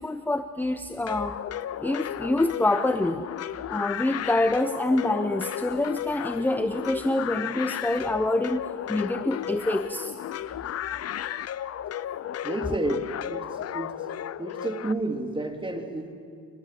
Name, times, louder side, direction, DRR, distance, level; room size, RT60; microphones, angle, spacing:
voice 1, 0.0-1.4 1.8-3.2 3.7-8.6 8.9-10.1, left 2 dB, 5° left, 10 dB, 0.8 m, -26 dB
sound 1, 1.1-14.9, left 11 dB, 55° left, 0.7 m, -34 dB
voice 2, 12.4-14.0 14.4-16.1, right 2 dB, 15° right, 5 dB, 2.8 m, -31 dB
27.0 x 20.0 x 7.5 m, 2.3 s
cardioid pair, 90°, 30 cm